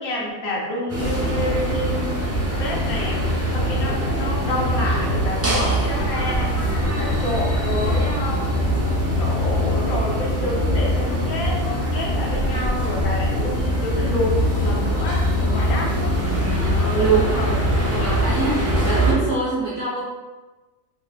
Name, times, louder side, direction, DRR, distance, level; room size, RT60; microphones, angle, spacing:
voice 1, 0.0-2.3 2.6-8.5 9.2-11.6 11.9-16.0 16.7-17.6, left 1 dB, 60° left, -3 dB, 1.4 m, -29 dB
sound 1, 0.9-19.1, equal, 15° right, 0.6 m, -22 dB
voice 2, 15.5-17.6 17.9-20.0, right 4 dB, 50° right, -10 dB, 1.5 m, -25 dB
5.3 x 3.6 x 2.4 m, 1.2 s
omnidirectional pair, 1.7 m